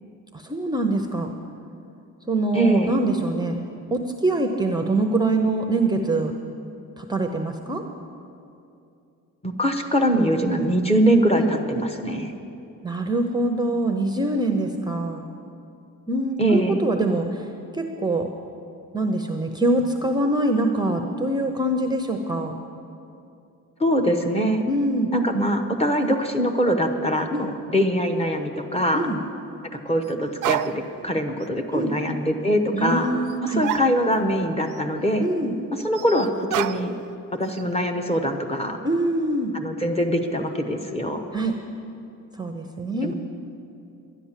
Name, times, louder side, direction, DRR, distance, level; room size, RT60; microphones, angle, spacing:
voice 1, 0.3-1.3 2.3-3.6 3.9-6.3 7.0-7.8 11.3-11.5 12.8-15.2 16.1-17.4 17.7-18.3 18.9-22.5 24.7-25.1 27.3-27.5 28.9-29.2 31.7-31.9 32.7-33.6 35.2-35.5 38.8-39.5 41.3-41.5 42.4-43.1, right 2 dB, 15° right, 3 dB, 0.6 m, -24 dB
voice 2, 2.5-3.0 9.4-12.3 16.4-16.8 23.8-24.6 25.1-29.1 29.8-30.7 31.0-33.1 33.6-35.3 35.8-36.9 37.3-38.8 39.5-41.3 43.0-43.1, equal, 20° left, 3 dB, 1.0 m, -23 dB
sound 1, 28.4-28.5 30.0-30.1 30.4-31.1 31.4-31.5 33.3-33.4 33.6-34.4 34.7-34.8 35.9-37.1 37.4-37.9, right 12 dB, 70° right, 0.5 m, -30 dB
11.5 x 11.0 x 7.4 m, 2.6 s
cardioid pair, 135°, 32 cm